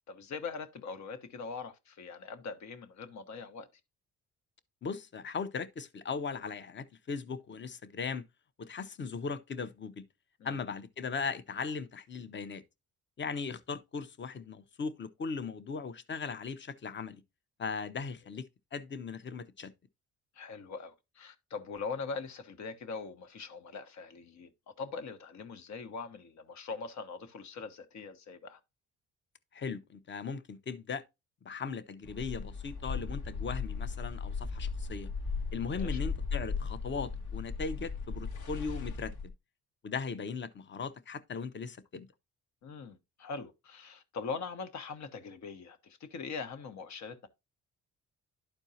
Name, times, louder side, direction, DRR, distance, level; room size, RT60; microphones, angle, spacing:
voice 1, 0.1-3.7 10.4-10.6 20.3-24.5 24.8-28.6 35.7-36.0 42.6-47.3, left 4 dB, 65° left, 1.3 m, -42 dB
voice 2, 4.8-8.2 8.6-10.0 10.4-12.6 13.2-17.2 17.6-18.4 18.7-19.7 29.5-31.0 31.4-35.1 35.5-39.1 39.8-42.1, left 5 dB, 40° left, 0.9 m, -38 dB
sound 1, 32.0-39.3, left 4 dB, 90° left, 1.7 m, -37 dB
12.0 x 4.5 x 2.8 m
cardioid pair, 90°, 30 cm